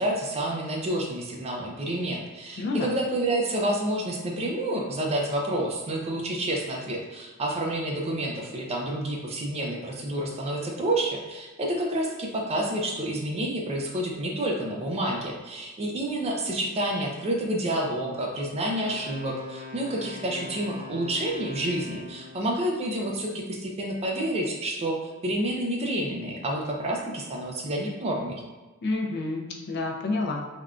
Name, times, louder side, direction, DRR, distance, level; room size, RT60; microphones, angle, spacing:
voice 1, 0.0-28.4, right 1 dB, 30° right, 0 dB, 0.4 m, -29 dB
voice 2, 2.6-2.9 28.8-30.5, left 2 dB, 50° left, 1 dB, 0.4 m, -29 dB
Wind instrument woodwind instrument, 18.8-22.5, left 3 dB, 65° right, 1.0 m, -42 dB
3.4 x 2.2 x 2.4 m, 1.2 s
head